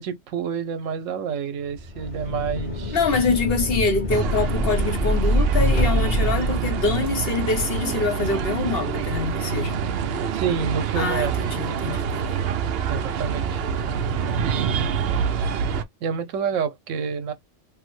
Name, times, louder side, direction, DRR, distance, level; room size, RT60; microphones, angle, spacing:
voice 1, 0.0-3.0 10.3-11.3 11.7-11.8 12.9-13.6 14.4-14.9 16.0-17.3, right 6 dB, 80° right, 1.0 m, -28 dB
sound 1, 1.7-7.3, left 1 dB, 30° left, 1.0 m, -25 dB
voice 2, 2.9-9.8 11.0-12.4 14.7-14.8, left 4 dB, 55° left, 1.0 m, -25 dB
sound 2, 4.1-15.8, right 7 dB, 65° right, 0.7 m, -26 dB
3.2 x 2.1 x 3.1 m
omnidirectional pair, 1.3 m